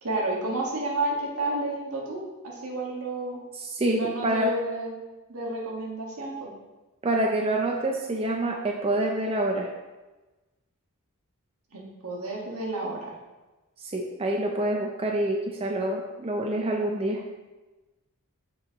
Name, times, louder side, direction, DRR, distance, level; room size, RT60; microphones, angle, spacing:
voice 1, 0.0-3.4 4.0-4.9 5.3-6.5 11.7-13.1, right 2 dB, 80° right, -3 dB, 1.6 m, -31 dB
voice 2, 3.6-4.5 7.0-9.7 13.8-17.2, right 1 dB, 25° right, 1 dB, 0.5 m, -27 dB
7.3 x 5.5 x 3.0 m, 1.2 s
head